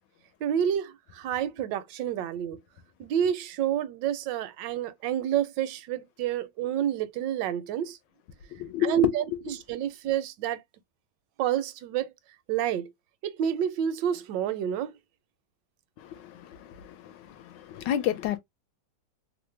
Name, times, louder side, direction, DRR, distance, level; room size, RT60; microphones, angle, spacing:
voice 1, 0.4-2.6 3.0-8.0 8.8-10.6 11.4-12.1 12.5-12.9 13.2-14.9, right 10 dB, 80° right, 1.2 m, -29 dB
voice 2, 8.5-9.4 16.0-18.4, left 11 dB, 80° left, 1.3 m, -31 dB
3.2 x 2.0 x 3.1 m
omnidirectional pair, 1.9 m